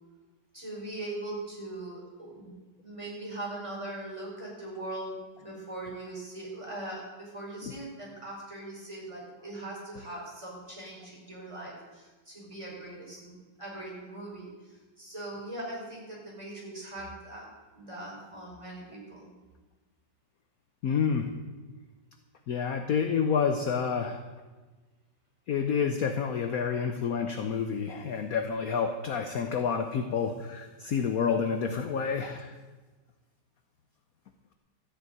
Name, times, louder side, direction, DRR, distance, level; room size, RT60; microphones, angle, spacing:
voice 1, 0.5-2.5 2.8-17.5 17.7-19.3, right 2 dB, 15° right, -4 dB, 4.7 m, -40 dB
voice 2, 20.8-21.3 22.5-24.2 25.5-32.5, left 6 dB, 55° left, 6 dB, 1.1 m, -29 dB
13.5 x 6.6 x 9.2 m, 1.3 s
omnidirectional pair, 2.2 m